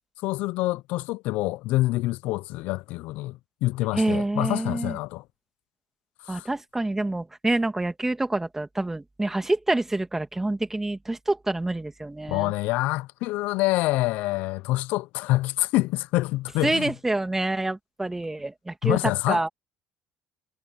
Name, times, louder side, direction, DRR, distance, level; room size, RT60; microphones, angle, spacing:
voice 1, 0.2-5.2 6.3-6.5 12.3-16.9 18.8-19.5, left 19 dB, 75° left, 0.5 m, -26 dB
voice 2, 3.9-5.0 6.3-12.5 16.6-19.0 19.3-19.5, right 2 dB, 15° right, 2.4 m, -27 dB
supercardioid pair, 70°, 3 cm